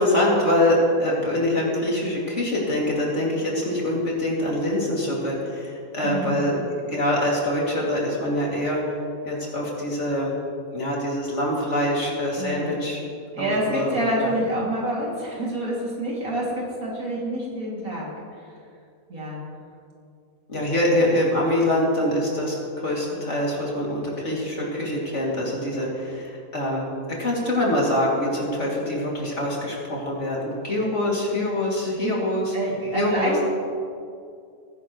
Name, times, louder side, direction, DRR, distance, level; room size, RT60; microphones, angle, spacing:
voice 1, 0.0-8.8 9.2-10.3 10.7-13.0 13.4-14.3 20.5-26.8 27.2-32.5 32.9-33.4, left 1 dB, 50° left, -4 dB, 3.0 m, -24 dB
voice 2, 6.0-6.4 12.4-12.7 13.3-18.4 19.1-19.4 31.8-32.1 32.5-33.4, right 1 dB, 65° right, -4 dB, 3.1 m, -27 dB
19.5 x 11.0 x 3.1 m, 2.4 s
omnidirectional pair, 1.6 m